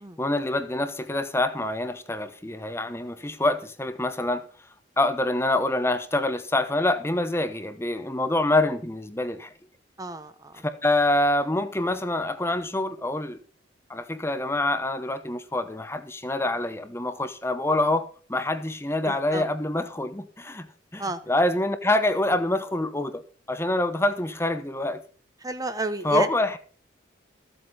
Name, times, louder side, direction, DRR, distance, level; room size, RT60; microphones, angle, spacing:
voice 1, 0.2-4.4 5.0-9.5 10.8-13.4 13.9-20.7 20.9-23.2 23.5-25.0 26.0-26.6, left 2 dB, 15° left, 0.9 m, -26 dB
voice 2, 10.0-10.6 19.0-19.4 21.0-21.2 25.4-26.3, right 3 dB, 20° right, 0.9 m, -31 dB
14.5 x 8.0 x 5.6 m
head